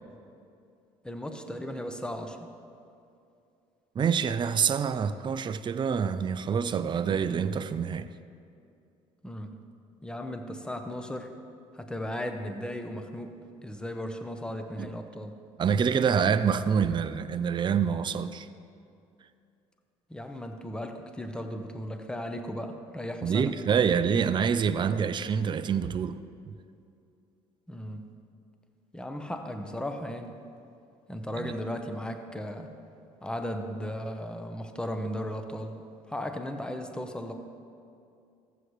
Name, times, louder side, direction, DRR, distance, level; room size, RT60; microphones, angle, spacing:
voice 1, 1.0-2.5 9.2-9.6 10.0-11.3 11.7-13.3 13.6-15.3 20.1-23.5 27.7-28.1 28.9-30.3 31.1-32.7 33.2-35.8 36.1-37.3, equal, 5° left, 0.9 m, -36 dB
voice 2, 4.0-8.1 14.8-14.9 15.6-18.5 23.2-26.2 26.5-26.6 31.4-31.5, right 7 dB, 35° right, 0.4 m, -26 dB
14.5 x 8.0 x 3.2 m
supercardioid pair, 70°, 14 cm